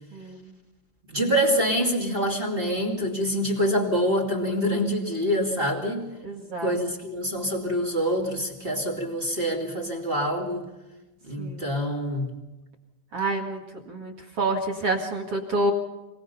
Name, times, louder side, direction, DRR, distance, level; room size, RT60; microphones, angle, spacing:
voice 1, 0.1-0.5 6.2-6.7 11.4-11.7 13.1-13.6 13.9-15.7, right 2 dB, 50° right, 0 dB, 1.9 m, -28 dB
voice 2, 1.1-6.1 6.6-10.6 11.3-12.3, equal, 20° right, 1 dB, 1.6 m, -26 dB
26.0 x 19.0 x 5.6 m, 1.1 s
omnidirectional pair, 5.3 m